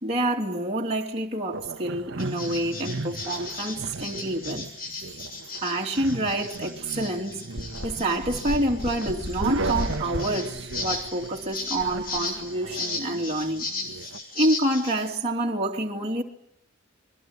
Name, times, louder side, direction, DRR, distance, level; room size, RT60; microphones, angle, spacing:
voice 1, 0.0-4.7 5.1-5.2 5.6-7.4 7.8-13.7 14.3-16.2, right 1 dB, 30° right, 2.8 m, -27 dB
sound 1, 1.5-14.2, right 2 dB, 60° right, 1.3 m, -36 dB
sound 2, 2.2-15.1, left 3 dB, 45° left, 6.9 m, -37 dB
sound 3, 6.5-6.6 6.9-7.0 7.6-12.7, left 1 dB, 65° left, 3.4 m, -35 dB
27.5 x 22.5 x 9.6 m
head